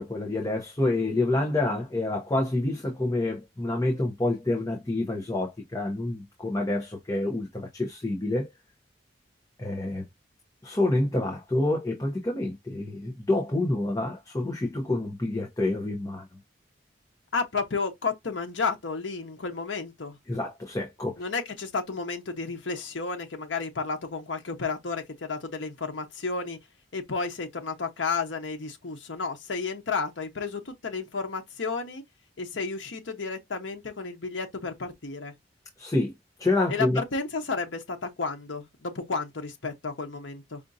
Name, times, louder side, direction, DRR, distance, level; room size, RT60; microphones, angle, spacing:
voice 1, 0.0-8.5 9.6-10.0 10.6-16.3 20.3-21.2 35.8-36.1 36.4-37.0, left 2 dB, 20° left, 0.7 m, -27 dB
voice 2, 17.3-20.2 21.2-26.6 26.9-32.0 32.4-35.3 36.7-40.6, left 4 dB, 80° left, 0.9 m, -32 dB
5.0 x 2.5 x 2.6 m
head